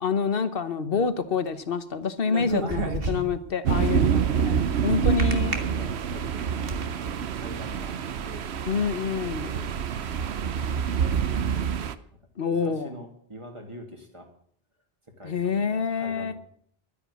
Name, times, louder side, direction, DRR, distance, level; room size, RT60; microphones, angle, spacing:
voice 1, 0.0-5.5 8.7-9.5 12.4-12.9 15.2-16.3, left 6 dB, 60° left, 12 dB, 1.3 m, -27 dB
sound 1, 2.2-3.5 5.2-5.5 6.2-6.8, right 2 dB, 65° right, 1.9 m, -29 dB
voice 2, 2.6-2.9 3.8-4.5 4.9-8.0 8.2-8.5 8.8-9.0 9.4-9.7 10.0-11.9 12.5-14.3 15.1-16.3, equal, 30° right, 2 dB, 2.7 m, -44 dB
sound 2, 3.6-11.9, right 7 dB, 85° right, 1.1 m, -26 dB
12.5 x 9.9 x 8.3 m, 0.62 s
omnidirectional pair, 1.1 m